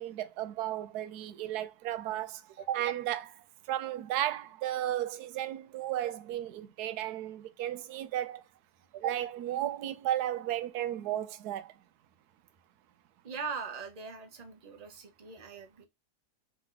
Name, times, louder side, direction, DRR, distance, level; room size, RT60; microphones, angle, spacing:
voice 1, 0.0-2.4 2.7-3.3 3.7-8.4 8.9-11.7, right 12 dB, 75° right, 1.1 m, -34 dB
voice 2, 13.2-15.9, right 5 dB, 35° right, 0.6 m, -41 dB
4.3 x 2.9 x 3.8 m
omnidirectional pair, 1.7 m